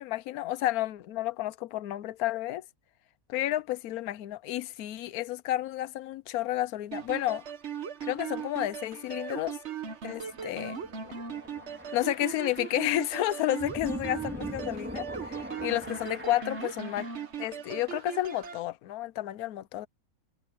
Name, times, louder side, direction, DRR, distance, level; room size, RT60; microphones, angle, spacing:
voice 1, 0.0-2.6 3.3-7.4 8.0-9.6 10.0-10.8 11.9-17.1 17.4-19.9, left 14 dB, 85° left, 1.1 m, -31 dB
sound 1, 6.9-18.6, right 7 dB, 55° right, 1.4 m, -39 dB
sound 2, 10.3-17.2, equal, 10° right, 4.1 m, -43 dB
omnidirectional pair, 1.5 m